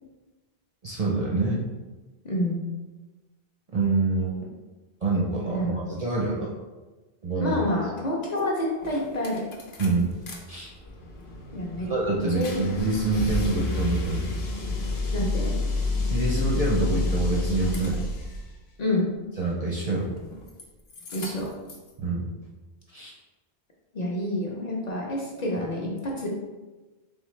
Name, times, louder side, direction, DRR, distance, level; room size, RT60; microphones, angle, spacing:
voice 1, 0.8-1.7 3.7-4.3 5.0-6.5 7.2-7.6 9.8-10.2 10.5-10.7 11.8-14.3 16.1-18.0 19.4-20.1 22.0-22.3 22.9-23.1, right 3 dB, 45° right, -4 dB, 0.6 m, -26 dB
voice 2, 2.2-2.6 5.5-5.8 7.4-9.5 11.5-11.9 12.3-12.6 15.1-15.5 18.8-19.1 21.1-21.5 23.9-26.3, left 1 dB, 45° left, -3 dB, 0.7 m, -28 dB
sound 1, 8.4-8.5 8.8-10.4 10.7-18.5 19.9-20.6 20.9-21.9, left 2 dB, 70° left, 0.9 m, -30 dB
3.7 x 3.6 x 3.2 m, 1.2 s
omnidirectional pair, 1.1 m